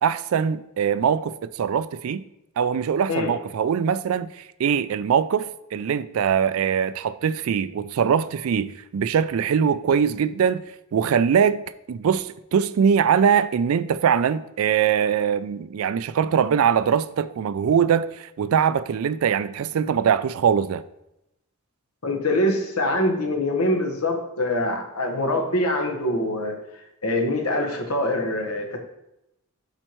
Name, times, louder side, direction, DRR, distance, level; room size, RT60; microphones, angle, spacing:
voice 1, 0.0-2.2 2.6-10.6 10.9-11.6 11.9-20.8, right 7 dB, 70° right, 0.3 m, -22 dB
voice 2, 22.0-26.6 27.0-28.8, left 1 dB, 85° left, 1.2 m, -24 dB
12.0 x 4.5 x 3.0 m
head